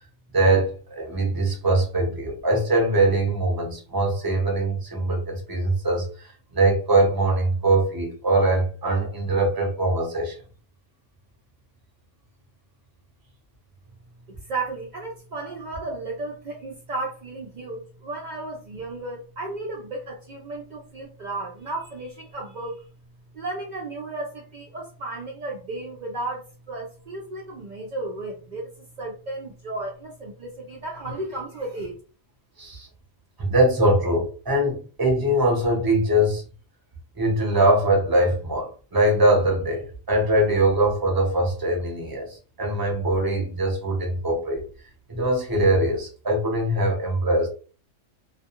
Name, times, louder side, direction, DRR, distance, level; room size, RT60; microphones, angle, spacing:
voice 1, 0.3-10.4 32.6-32.9 33.4-36.4 37.2-44.6 45.1-47.5, right 1 dB, 25° right, 1 dB, 0.6 m, -22 dB
voice 2, 14.3-22.9 23.3-28.7 29.0-32.0, right 2 dB, 70° right, -1 dB, 0.4 m, -34 dB
2.4 x 2.2 x 2.8 m, 0.38 s
omnidirectional pair, 1.4 m